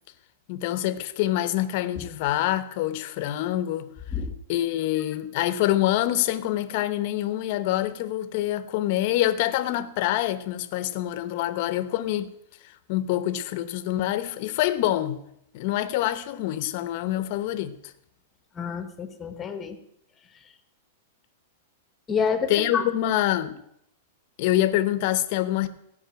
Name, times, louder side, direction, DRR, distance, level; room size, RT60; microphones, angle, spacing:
voice 1, 0.5-3.9 4.5-12.3 12.9-15.2 15.5-17.9 22.5-23.6 24.4-25.7, left 13 dB, 40° left, 0.9 m, -26 dB
voice 2, 18.6-19.8 22.1-22.8, left 6 dB, 15° left, 1.0 m, -28 dB
16.0 x 5.6 x 9.1 m
supercardioid pair, 175°, 0 cm